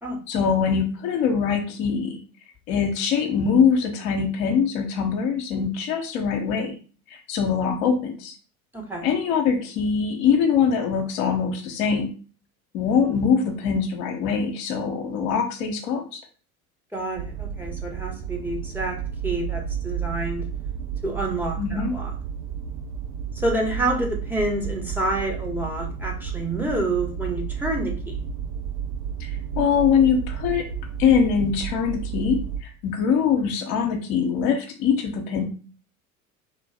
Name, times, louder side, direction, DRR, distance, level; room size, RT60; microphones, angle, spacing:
voice 1, 0.3-2.2 2.7-6.7 7.1-8.3 9.0-12.1 12.7-16.2 21.6-21.9 29.6-30.6 31.0-35.4, left 6 dB, 55° left, 3 dB, 1.0 m, -23 dB
voice 2, 8.7-9.0 16.9-19.0 19.2-20.5 21.0-22.1 23.3-28.2, right 2 dB, 5° right, 0 dB, 1.3 m, -28 dB
sound 1, 17.2-32.6, right 8 dB, 60° right, 1.1 m, -32 dB
3.2 x 3.1 x 4.2 m, 0.38 s
figure-of-eight pair, 70°, 43 cm